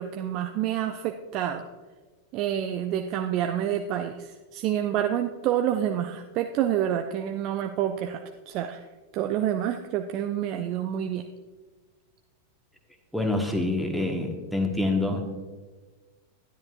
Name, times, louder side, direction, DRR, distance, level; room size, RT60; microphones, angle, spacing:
voice 1, 0.0-1.6 2.3-8.8 9.1-11.3, right 10 dB, 40° right, 6 dB, 0.5 m, -28 dB
voice 2, 13.1-15.2, left 2 dB, ahead, 3 dB, 1.4 m, -26 dB
12.0 x 10.5 x 2.5 m, 1.3 s
figure-of-eight pair, 90°, 0 cm